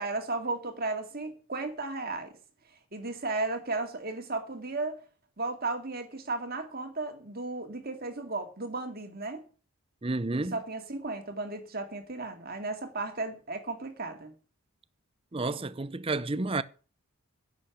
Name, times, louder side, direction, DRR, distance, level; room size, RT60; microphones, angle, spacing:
voice 1, 0.0-2.3 2.9-5.0 5.4-9.5 10.3-14.3, right 3 dB, 40° right, 2.2 m, -35 dB
voice 2, 10.0-10.6 15.3-16.6, right 2 dB, 25° right, 0.6 m, -30 dB
11.0 x 7.2 x 9.2 m
head